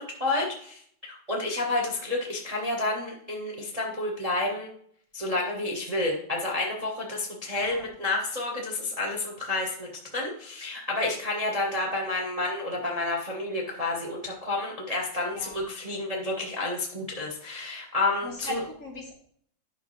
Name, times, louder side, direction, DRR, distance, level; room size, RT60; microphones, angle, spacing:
voice 1, 0.0-4.7 5.1-18.6, left 2 dB, 85° right, -1 dB, 0.3 m, -30 dB
voice 2, 18.2-19.1, left 1 dB, 40° left, 0 dB, 1.3 m, -38 dB
10.5 x 6.2 x 3.2 m, 0.63 s
omnidirectional pair, 3.3 m